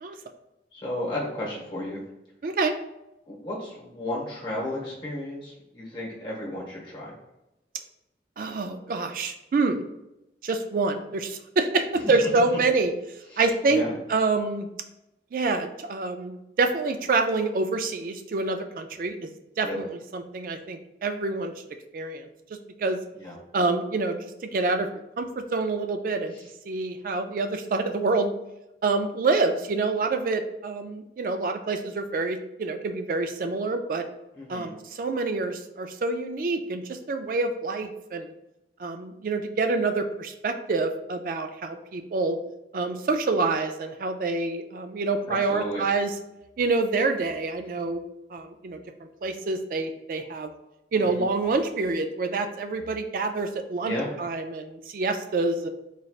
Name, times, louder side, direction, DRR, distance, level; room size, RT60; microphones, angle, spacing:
voice 1, 0.7-2.0 3.3-7.1 12.0-12.2 13.3-14.0 19.6-19.8 23.2-23.3 26.3-26.5 34.4-34.7 45.3-45.8 51.1-51.2 53.8-54.1, left 1 dB, 25° left, -4 dB, 1.2 m, -33 dB
voice 2, 2.4-2.7 8.4-9.8 10.4-12.9 13.4-13.8 14.1-14.7 15.3-19.3 19.6-21.5 21.9-22.3 22.8-23.0 23.5-24.2 24.4-26.3 26.7-28.3 28.8-34.0 34.5-38.3 38.8-42.4 42.7-46.1 46.6-48.0 48.3-48.8 49.2-50.5 50.9-55.7, right 3 dB, 50° right, 7 dB, 0.3 m, -27 dB
4.0 x 3.2 x 2.3 m, 0.92 s
head